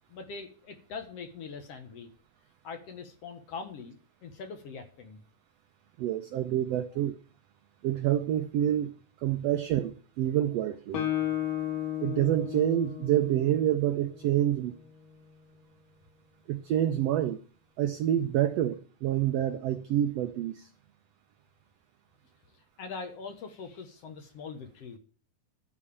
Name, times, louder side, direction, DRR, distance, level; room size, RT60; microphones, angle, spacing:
voice 1, 0.1-2.1 2.6-5.2 22.8-25.0, left 5 dB, 60° left, 2.0 m, -42 dB
voice 2, 6.0-7.1 7.8-8.9 9.2-11.0 12.0-14.7 16.5-17.4 17.8-20.7, right 11 dB, 80° right, 1.4 m, -27 dB
Guitar, 10.9-14.6, left 11 dB, 80° left, 3.5 m, -34 dB
12.5 x 4.8 x 8.5 m
omnidirectional pair, 3.7 m